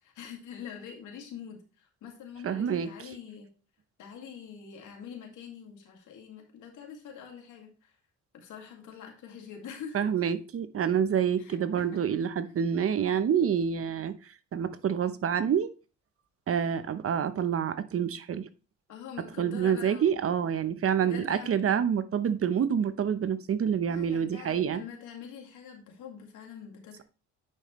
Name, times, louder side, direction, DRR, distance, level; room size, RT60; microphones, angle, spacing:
voice 1, 0.0-3.5 4.0-7.9 8.3-10.1 11.4-12.0 18.9-20.1 21.0-21.5 23.9-27.0, left 7 dB, 80° left, 2.2 m, -45 dB
voice 2, 2.4-2.9 9.9-14.1 14.5-15.7 16.5-18.5 19.4-24.8, right 8 dB, 50° right, 0.8 m, -27 dB
9.8 x 5.1 x 3.2 m
cardioid pair, 90°, 30 cm